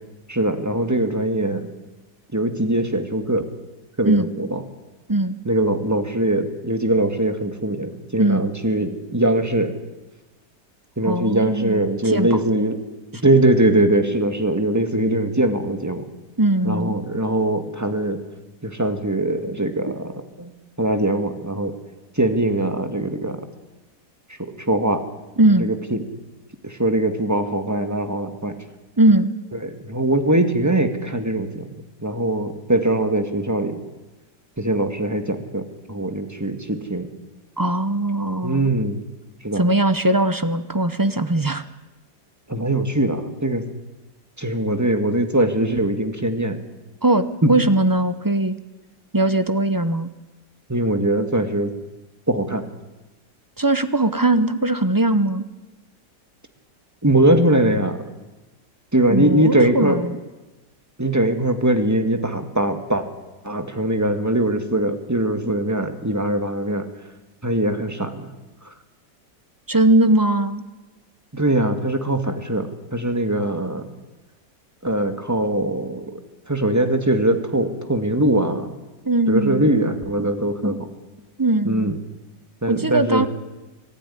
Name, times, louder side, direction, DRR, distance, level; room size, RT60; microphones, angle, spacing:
voice 1, 0.3-1.7 2.3-3.5 4.0-4.6 5.5-9.7 11.0-12.8 13.2-16.1 16.6-18.2 18.6-20.5 20.8-21.8 22.2-23.5 24.4-25.0 25.6-26.1 26.6-28.6 29.6-31.7 32.0-33.8 34.6-37.1 38.4-39.0 39.4-39.6 42.5-43.6 44.4-46.6 47.4-47.5 50.7-51.7 52.3-52.6 57.0-58.0 58.9-60.0 61.0-63.1 63.4-66.9 67.4-68.3 68.6-68.7 71.3-73.8 74.8-76.1 76.5-78.8 79.3-80.9 81.6-82.0 82.6-83.3, right 1 dB, 10° right, 7 dB, 1.8 m, -21 dB
voice 2, 11.0-12.4 16.4-17.0 19.9-20.0 25.4-25.7 29.0-29.3 37.6-38.7 39.6-41.6 47.0-48.5 49.1-50.1 53.6-55.4 59.1-60.2 69.7-70.6 79.0-79.7 81.4-81.9 82.7-83.3, right 2 dB, 25° right, 11 dB, 0.4 m, -20 dB
25.5 x 15.0 x 9.9 m, 1.1 s
omnidirectional pair, 1.9 m